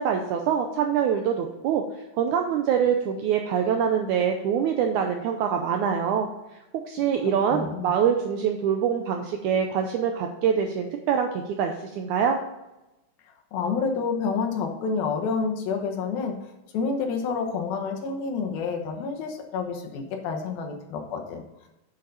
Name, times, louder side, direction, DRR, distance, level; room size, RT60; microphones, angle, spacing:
voice 1, 0.0-1.8 2.2-6.3 6.9-12.4, right 7 dB, 90° right, 4 dB, 1.7 m, -24 dB
voice 2, 7.5-7.9 13.5-16.4 16.7-21.4, left 5 dB, 85° left, 4 dB, 2.9 m, -28 dB
8.2 x 6.7 x 4.0 m, 0.99 s
omnidirectional pair, 4.2 m